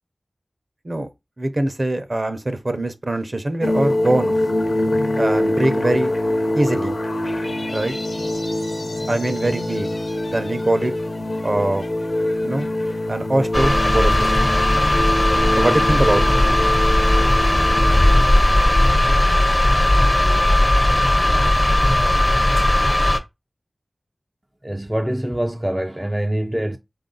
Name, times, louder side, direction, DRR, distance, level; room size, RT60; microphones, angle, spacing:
voice 1, 1.4-4.4 5.2-6.1 6.5-7.0 7.7-7.9 9.1-9.9 10.3-10.9 11.4-11.8 12.4-12.7 13.1-14.3 15.6-16.2, right 1 dB, 45° right, 0.8 m, -22 dB
sound 1, 3.6-18.9, left 1 dB, 60° left, 0.8 m, -24 dB
sound 2, 13.5-23.2, left 1 dB, 25° left, 0.6 m, -17 dB
voice 2, 24.6-26.8, right 1 dB, 15° right, 0.4 m, -24 dB
4.0 x 2.6 x 3.9 m
wide cardioid pair, 60°, 0 cm